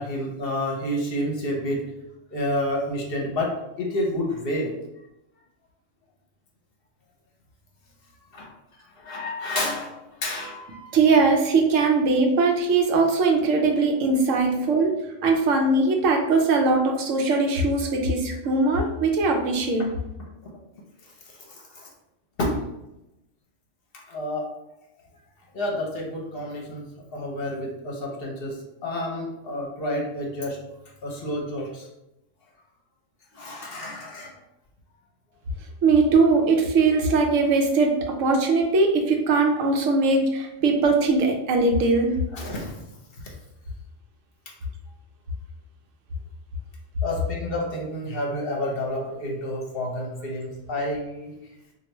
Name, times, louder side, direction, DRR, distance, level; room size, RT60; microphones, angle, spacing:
voice 1, 0.0-1.8 2.3-4.7 8.3-8.5 9.0-10.9 21.0-21.1 21.5-21.9 22.4-22.6 23.9-24.4 25.5-26.8 27.1-28.6 28.8-30.6 31.0-31.9 33.3-34.3 42.3-42.8 47.0-51.4, left 1 dB, 55° left, -1 dB, 0.9 m, -29 dB
voice 2, 10.9-15.0 15.2-19.8 35.8-42.2, right 3 dB, 85° right, 2 dB, 1.0 m, -20 dB
3.2 x 2.6 x 2.9 m, 0.90 s
omnidirectional pair, 1.3 m